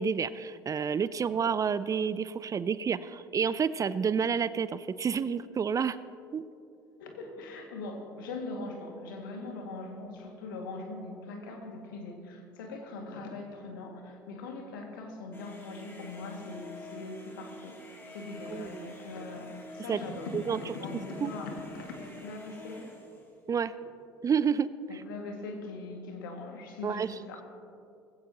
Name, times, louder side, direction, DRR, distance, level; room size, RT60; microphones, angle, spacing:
voice 1, 0.0-6.0 6.3-6.4 18.5-18.9 19.9-20.0 20.3-20.6 21.2-21.3 23.5-23.7 24.2-25.0 26.8-27.1, right 6 dB, 30° right, 16 dB, 0.5 m, -29 dB
voice 2, 7.0-22.9 24.9-27.4, left 3 dB, 75° left, 2 dB, 2.2 m, -41 dB
sound 1, 15.3-23.3, left 2 dB, 20° left, 3.0 m, -47 dB
19.5 x 16.0 x 3.0 m, 2.6 s
hypercardioid pair, 65°, 11 cm